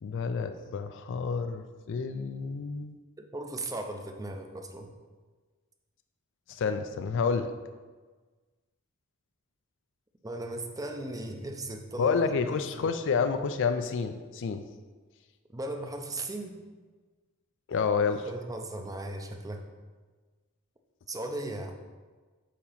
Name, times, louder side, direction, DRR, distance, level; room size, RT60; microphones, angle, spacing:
voice 1, 0.0-3.0 6.5-7.5 12.0-14.6 17.7-18.3, left 5 dB, 60° left, 9 dB, 0.4 m, -29 dB
voice 2, 3.3-4.9 10.2-12.1 12.5-12.9 15.5-16.6 18.3-19.7 21.1-21.7, right 1 dB, 15° right, 4 dB, 0.6 m, -37 dB
8.3 x 2.9 x 5.7 m, 1.4 s
head